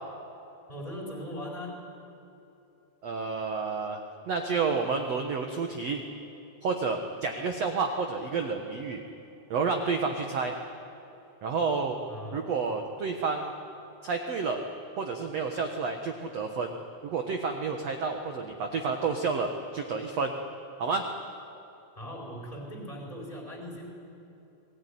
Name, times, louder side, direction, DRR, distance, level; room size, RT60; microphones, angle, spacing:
voice 1, 0.7-1.8 12.1-12.5 22.0-23.9, equal, 10° left, -1 dB, 4.0 m, -39 dB
voice 2, 3.0-4.0 4.3-6.0 6.6-9.0 9.5-10.5 11.4-12.0 12.3-13.5 14.0-14.6 15.0-16.7 17.0-20.3 20.8-21.0, right 4 dB, 70° right, 4 dB, 1.6 m, -30 dB
26.0 x 20.0 x 10.0 m, 2.9 s
omnidirectional pair, 4.9 m